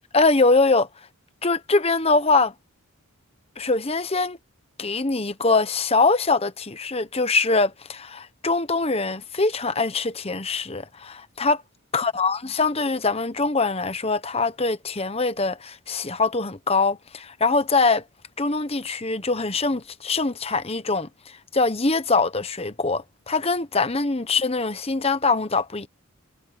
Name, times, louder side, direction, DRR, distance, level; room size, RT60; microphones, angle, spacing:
voice 1, 0.1-0.9 1.4-2.5 3.6-4.4 4.8-11.6 11.9-18.0 18.4-25.9, left 3 dB, 25° left, 1.0 m, -23 dB
head